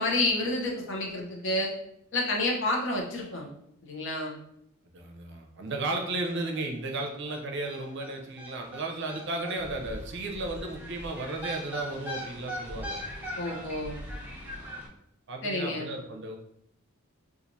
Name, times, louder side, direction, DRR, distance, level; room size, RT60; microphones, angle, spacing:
voice 1, 0.0-1.7 2.1-3.5 3.8-4.3 13.4-14.0 15.4-15.9, left 2 dB, 60° left, 0 dB, 0.8 m, -29 dB
voice 2, 4.9-13.0 15.3-16.3, right 2 dB, 60° right, 3 dB, 0.6 m, -34 dB
sound 1, 6.2-6.3 6.6-6.7 6.9-14.9, equal, 10° right, 0.7 m, -40 dB
4.4 x 2.5 x 2.6 m, 0.75 s
head